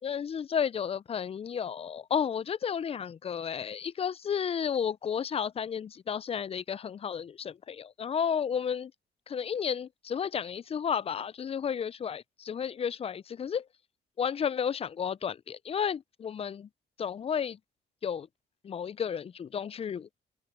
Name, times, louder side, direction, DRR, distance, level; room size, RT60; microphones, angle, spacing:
voice 1, 0.0-8.9 9.3-13.7 14.2-16.7 17.0-17.6 18.0-18.3 18.6-20.1, left 7 dB, 30° left, 0.3 m, -32 dB
open air
cardioid pair, 90°, 20 cm